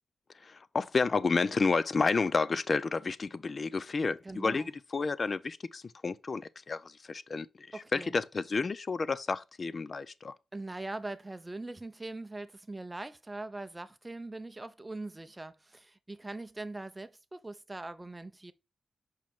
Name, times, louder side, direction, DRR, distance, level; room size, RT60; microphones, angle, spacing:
voice 1, 0.4-4.6 4.9-6.8 7.1-7.7 7.9-10.3, left 4 dB, 45° left, 0.5 m, -30 dB
voice 2, 4.2-4.7 7.7-8.2 10.5-18.5, right 2 dB, 15° right, 0.7 m, -42 dB
5.7 x 5.0 x 3.6 m
cardioid pair, 95°, 0 cm